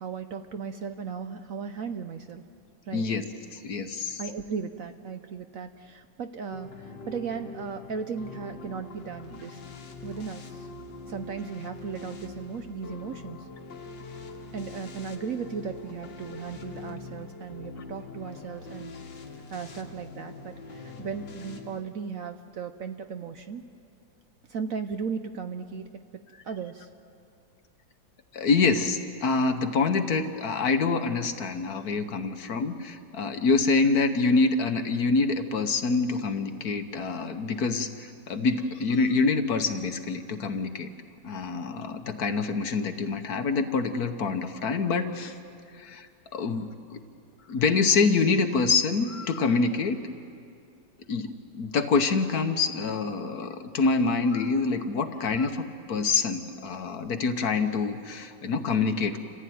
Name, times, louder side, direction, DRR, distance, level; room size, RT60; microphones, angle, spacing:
voice 1, 0.0-2.4 2.9-3.0 4.2-9.6 10.0-10.7 11.1-13.5 14.5-18.9 19.5-23.6 24.5-26.9 55.2-55.3, right 6 dB, 60° right, 8 dB, 1.0 m, -36 dB
voice 2, 2.9-3.2 3.5-4.2 28.3-40.9 41.2-45.4 45.8-46.1 46.3-47.0 47.5-50.0 51.1-51.3 51.5-59.2, left 4 dB, 60° left, 8 dB, 1.5 m, -26 dB
sound 1, 6.5-21.8, left 3 dB, 80° left, 2.2 m, -43 dB
28.0 x 15.0 x 9.4 m, 2.4 s
omnidirectional pair, 2.0 m